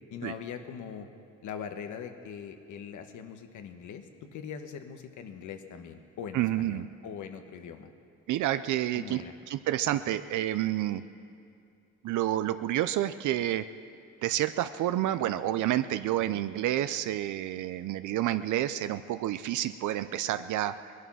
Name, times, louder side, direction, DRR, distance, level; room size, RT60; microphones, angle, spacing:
voice 1, 0.1-1.1 1.4-7.9 8.9-9.3 16.2-16.4, left 7 dB, 80° left, 7 dB, 1.3 m, -42 dB
voice 2, 6.3-6.9 8.3-9.2 9.5-11.0 12.0-13.6 14.2-20.9, right 13 dB, 75° right, 11 dB, 0.5 m, -29 dB
19.5 x 11.5 x 6.2 m, 2.4 s
cardioid pair, 90°, 30 cm